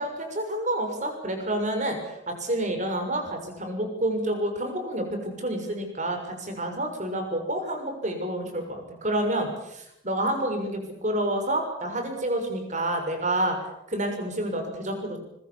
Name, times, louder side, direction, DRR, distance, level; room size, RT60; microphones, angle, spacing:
voice 1, 0.0-13.6 13.9-15.2, right 1 dB, 40° right, 5 dB, 6.5 m, -29 dB
25.5 x 22.5 x 7.2 m, 0.81 s
head